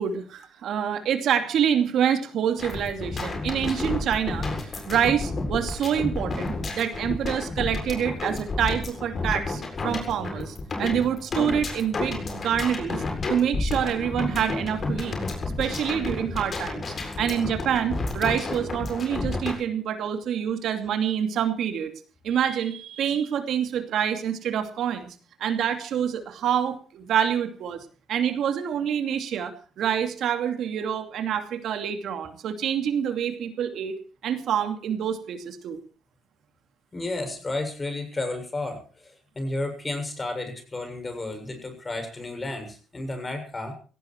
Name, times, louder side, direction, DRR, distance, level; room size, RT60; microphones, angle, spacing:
voice 1, 0.0-13.0 13.3-15.2 15.6-16.8 17.2-21.9 22.2-25.1 25.4-27.8 28.1-34.0 34.2-35.8, right 8 dB, 75° right, 7 dB, 2.6 m, -26 dB
sound 1, 2.6-19.5, left 3 dB, 40° left, 7.4 m, -31 dB
voice 2, 36.9-43.7, left 2 dB, 25° left, 7 dB, 6.8 m, -32 dB
17.5 x 16.0 x 4.6 m, 0.39 s
cardioid pair, 90°, 0 cm